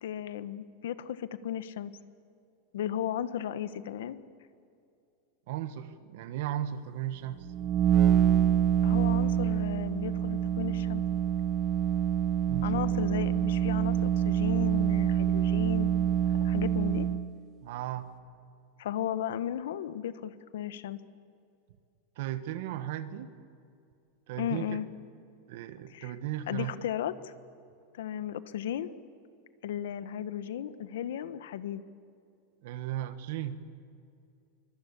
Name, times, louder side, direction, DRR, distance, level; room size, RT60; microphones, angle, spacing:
voice 1, 0.0-1.9 2.7-4.2 8.8-11.0 12.6-15.9 16.3-17.1 18.8-21.0 24.4-24.9 25.9-26.1 26.5-27.3 27.9-28.9 29.6-31.8, left 10 dB, 80° left, 13 dB, 1.2 m, -35 dB
voice 2, 5.5-7.5 12.5-12.8 17.6-18.1 22.2-23.4 24.3-24.8 25.5-26.8 32.6-33.6, right 12 dB, 50° right, 12 dB, 1.3 m, -36 dB
sound 1, 7.4-17.3, right 9 dB, 25° right, 0.8 m, -26 dB
25.0 x 23.0 x 8.5 m, 2.5 s
supercardioid pair, 175°, 0 cm